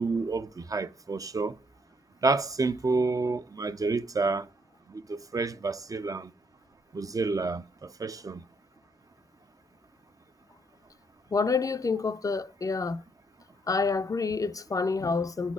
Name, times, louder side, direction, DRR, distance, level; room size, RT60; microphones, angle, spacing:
voice 1, 0.0-1.5 2.2-4.5 4.9-6.3 6.9-8.4, right 3 dB, 40° right, 0.4 m, -29 dB
voice 2, 11.3-13.0 13.7-15.5, left 4 dB, 40° left, 0.4 m, -28 dB
9.9 x 4.2 x 3.5 m
cardioid pair, 60°, 9 cm